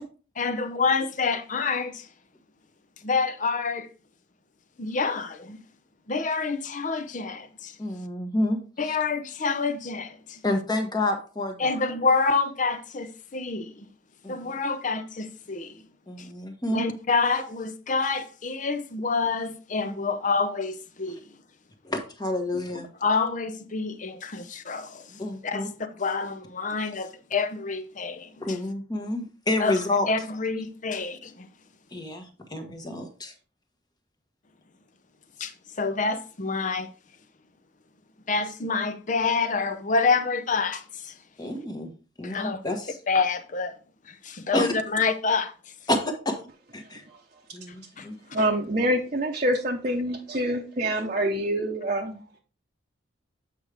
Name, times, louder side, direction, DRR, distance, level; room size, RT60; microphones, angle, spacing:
voice 1, 0.4-2.1 3.0-3.9 4.8-5.6 6.1-7.8 8.8-10.4 11.6-13.9 14.3-15.8 16.2-16.3 16.7-21.2 23.0-25.7 26.0-28.6 29.6-29.8 30.1-31.5 35.4-36.9 38.3-41.1 42.2-42.6 43.1-43.8 44.1-45.5 48.0-48.1 48.4-48.5, left 4 dB, 40° left, 0.6 m, -27 dB
voice 2, 7.8-9.0 10.4-11.8 14.2-14.5 16.1-16.8 21.8-22.9 25.2-25.7 28.4-30.1 31.9-33.3 41.4-41.9 42.2-43.0 44.5-44.7 45.9-46.4 46.7-47.0 47.5-48.2, left 1 dB, 20° left, 1.1 m, -29 dB
voice 3, 48.3-52.2, right 1 dB, 35° right, 0.8 m, -26 dB
8.1 x 4.9 x 3.4 m
head